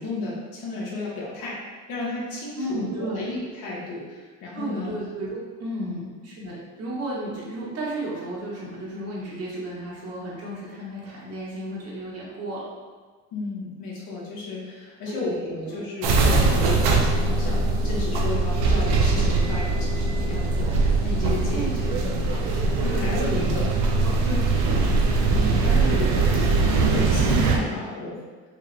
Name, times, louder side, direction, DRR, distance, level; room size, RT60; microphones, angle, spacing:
voice 1, 0.0-1.6 1.9-4.9 5.8-6.0 13.3-23.7 24.2-24.4 25.3-28.2, left 3 dB, 75° left, -5 dB, 1.4 m, -33 dB
voice 2, 2.5-3.3 4.5-12.7 15.1-15.8 21.5-22.2 22.8-23.7 24.0-24.9 25.2-25.7, right 1 dB, 40° right, -5 dB, 1.3 m, -34 dB
sound 1, 16.0-27.6, right 3 dB, 85° right, 0.7 m, -21 dB
4.5 x 2.3 x 3.3 m, 1.4 s
cardioid pair, 115°, 37 cm